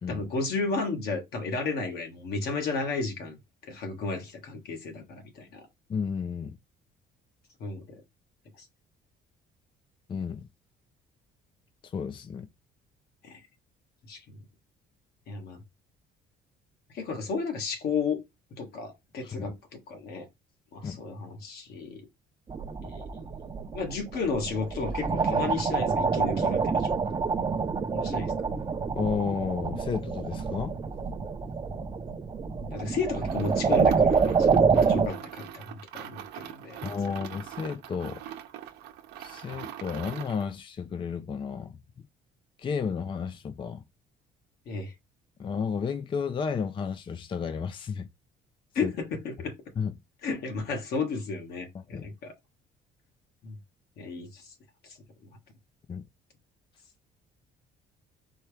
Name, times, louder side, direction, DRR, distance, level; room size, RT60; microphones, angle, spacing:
voice 1, 0.1-3.4 3.7-5.7 7.6-8.0 13.2-13.4 14.1-14.2 15.3-15.6 16.9-18.2 18.5-20.3 20.7-22.0 22.8-23.0 23.7-26.9 27.9-28.3 32.7-36.8 44.7-44.9 48.7-49.5 50.2-52.3 53.4-53.6 54.0-54.4 55.2-55.3, left 4 dB, 70° left, 1.7 m, -33 dB
voice 2, 5.9-6.6 10.1-10.4 11.8-12.5 19.2-19.5 20.8-21.0 28.9-30.8 36.8-38.2 39.2-41.8 42.6-43.8 45.4-48.1 48.8-48.9 49.8-49.9 51.7-52.1 55.9-56.0, left 6 dB, 30° left, 0.4 m, -32 dB
sound 1, 22.5-35.1, right 5 dB, 25° right, 0.6 m, -27 dB
sound 2, 33.2-40.5, right 11 dB, 85° right, 0.8 m, -43 dB
4.4 x 3.4 x 3.3 m
cardioid pair, 110°, 17 cm